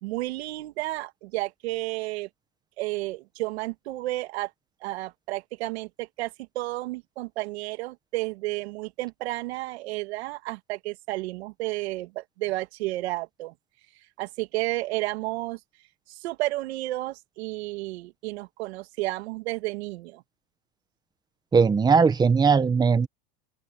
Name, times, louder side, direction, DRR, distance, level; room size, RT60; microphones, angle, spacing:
voice 1, 0.0-2.3 2.8-4.5 4.8-13.5 14.2-15.6 16.1-20.2, right 19 dB, 75° right, 2.6 m, -32 dB
voice 2, 21.5-23.1, right 5 dB, 15° right, 1.1 m, -19 dB
open air
supercardioid pair, 145°, 32 cm